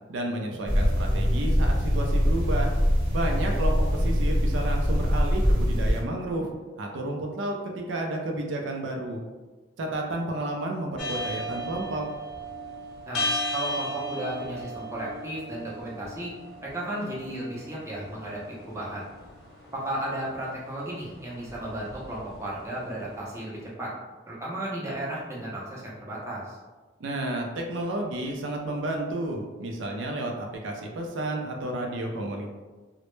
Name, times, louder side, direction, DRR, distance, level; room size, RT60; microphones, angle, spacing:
voice 1, 0.1-2.7 3.1-6.5 6.8-9.2 9.8-12.0 27.0-32.5, right 1 dB, 85° right, 1 dB, 0.4 m, -31 dB
sound 1, 0.7-6.0, equal, 50° right, 0.7 m, -23 dB
sound 2, 11.0-23.1, equal, 55° left, 0.6 m, -36 dB
voice 2, 13.1-16.3 16.6-19.0 19.7-23.9 24.3-26.6, right 1 dB, 15° right, -6 dB, 0.5 m, -34 dB
2.1 x 2.0 x 3.0 m, 1.3 s
head